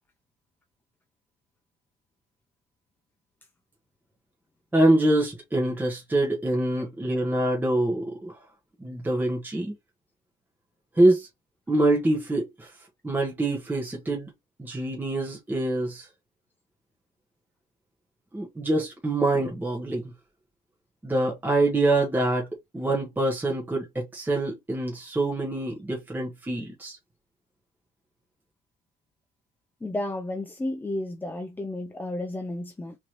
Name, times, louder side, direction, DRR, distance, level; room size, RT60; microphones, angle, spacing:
voice 1, 4.7-8.4 8.8-9.7 10.9-11.3 11.7-12.7 13.0-14.3 14.6-16.1 18.3-20.0 21.0-22.5 22.7-27.0, right 2 dB, 10° right, 1.3 m, -25 dB
voice 2, 29.8-33.0, left 1 dB, 10° left, 0.5 m, -32 dB
3.7 x 3.2 x 2.9 m
cardioid pair, 110°, 17 cm